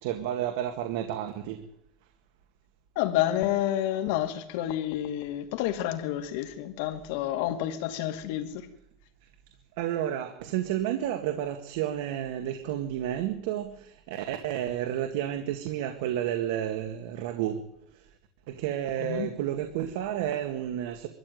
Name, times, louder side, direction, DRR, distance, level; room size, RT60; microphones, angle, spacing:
voice 1, 0.0-1.6 9.8-17.6 17.9-18.1 18.5-21.1, right 11 dB, 80° right, 2.1 m, -31 dB
voice 2, 3.0-8.7 19.1-19.3, left 12 dB, 75° left, 2.5 m, -29 dB
23.0 x 14.0 x 9.4 m
cardioid pair, 170°, 0 cm